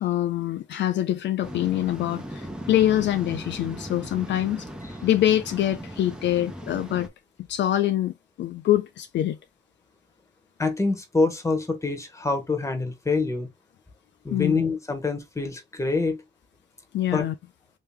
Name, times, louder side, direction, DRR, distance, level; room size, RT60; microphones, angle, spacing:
voice 1, 0.0-4.7 5.0-7.1 7.5-9.4 14.3-14.6 16.9-17.3, left 12 dB, 65° left, 0.4 m, -24 dB
Waves surf, 1.4-7.1, right 1 dB, 5° right, 0.9 m, -38 dB
voice 2, 10.6-13.5 14.2-16.2 17.1-17.2, left 3 dB, 15° left, 1.2 m, -25 dB
3.3 x 2.9 x 3.5 m
cardioid pair, 90°, 20 cm